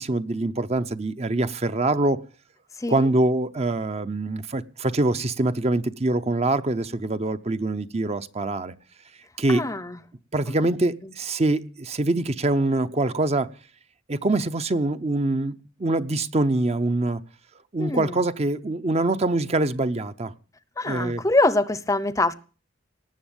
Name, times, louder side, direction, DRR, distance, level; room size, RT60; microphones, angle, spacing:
voice 1, 0.0-2.2 2.9-8.7 9.4-9.7 10.3-13.5 14.1-15.5 15.8-17.2 17.7-20.3 20.8-21.2, right 2 dB, 35° right, 0.7 m, -24 dB
voice 2, 9.5-10.0 17.8-18.2 20.8-22.3, left 2 dB, 15° left, 0.7 m, -24 dB
19.0 x 7.1 x 8.9 m
head